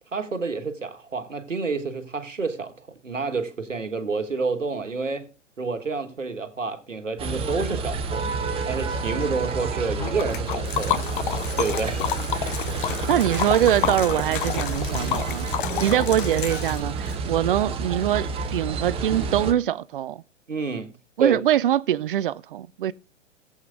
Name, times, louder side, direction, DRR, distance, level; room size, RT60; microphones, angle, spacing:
voice 1, 0.1-5.3 5.6-8.3 8.7-11.0 11.6-12.0 20.5-20.9 21.2-21.4, right 4 dB, 85° right, 1.5 m, -29 dB
sound 1, 7.2-19.5, right 4 dB, 15° right, 1.1 m, -29 dB
Liquid, 10.0-17.2, left 11 dB, 45° left, 0.6 m, -30 dB
voice 2, 13.1-15.5 15.8-20.2 21.2-22.9, right 11 dB, 45° right, 0.5 m, -23 dB
19.0 x 8.0 x 2.5 m
figure-of-eight pair, 115°, 37 cm